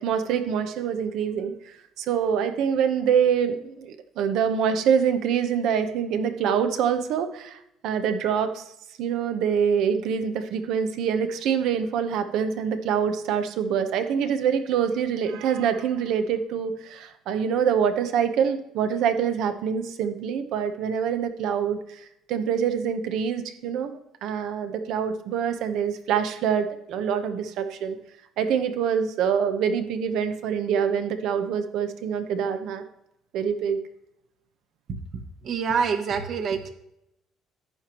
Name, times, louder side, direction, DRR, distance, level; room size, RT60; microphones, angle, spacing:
voice 1, 0.0-8.7 9.0-28.0 28.4-32.8 33.3-33.8, right 7 dB, 65° right, 9 dB, 0.9 m, -25 dB
voice 2, 35.4-36.7, right 6 dB, 45° right, 7 dB, 1.1 m, -26 dB
11.0 x 8.5 x 3.0 m, 0.80 s
cardioid pair, 155°, 0 cm